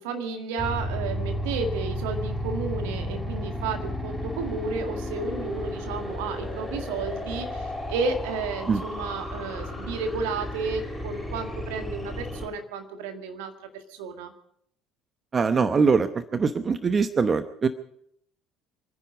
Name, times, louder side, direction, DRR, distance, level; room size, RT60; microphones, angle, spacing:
voice 1, 0.0-14.3, right 4 dB, 70° right, 5 dB, 1.9 m, -32 dB
sound 1, 0.6-12.5, equal, 5° right, 5.2 m, -33 dB
voice 2, 15.3-17.7, right 5 dB, 30° right, 11 dB, 0.9 m, -23 dB
27.0 x 10.0 x 5.1 m, 0.71 s
figure-of-eight pair, 60°, 0 cm